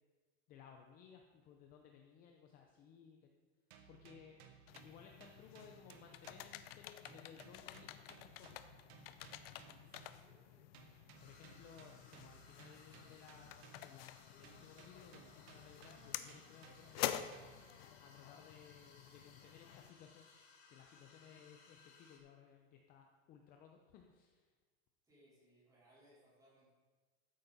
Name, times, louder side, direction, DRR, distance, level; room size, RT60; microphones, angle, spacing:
voice 1, 0.5-3.3 3.9-4.4 4.8-8.6 11.2-17.3 18.0-20.3 20.7-24.5, left 7 dB, 25° left, 3 dB, 0.7 m, -60 dB
sound 1, 3.7-6.8 7.1-10.3 10.7-14.1 14.4-17.8, right 8 dB, 65° right, 1.4 m, -62 dB
sound 2, 4.7-19.9, left 12 dB, 60° left, 0.7 m, -49 dB
voice 2, 9.8-10.6 21.2-21.4 25.0-26.7, equal, 10° right, -8 dB, 4.1 m, -68 dB
sound 3, 11.1-22.2, left 4 dB, 80° left, 3.9 m, -64 dB
13.5 x 8.8 x 4.1 m, 1.4 s
supercardioid pair, 170°, 33 cm